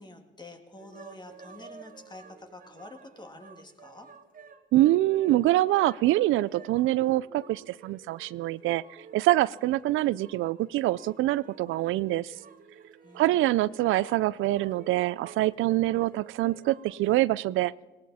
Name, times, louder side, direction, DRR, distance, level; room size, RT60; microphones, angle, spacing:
voice 1, 0.0-4.1 13.0-13.9, left 2 dB, 20° left, 5 dB, 2.2 m, -48 dB
sound 1, 0.8-17.2, right 5 dB, 45° right, 1.4 m, -51 dB
voice 2, 4.7-12.3 13.1-17.7, right 16 dB, 85° right, 20 dB, 0.4 m, -25 dB
18.5 x 18.5 x 4.2 m, 1.3 s
cardioid pair, 90°, 20 cm